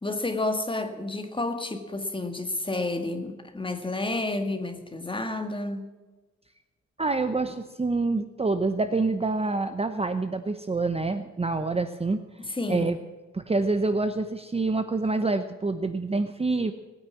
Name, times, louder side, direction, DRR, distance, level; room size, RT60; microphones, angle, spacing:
voice 1, 0.0-5.9 12.4-12.9, left 2 dB, 15° left, 1.8 m, -30 dB
voice 2, 7.0-12.2 12.7-13.0 13.3-16.7, right 3 dB, 20° right, 0.8 m, -26 dB
19.0 x 9.5 x 7.4 m
wide cardioid pair, 120°, 29 cm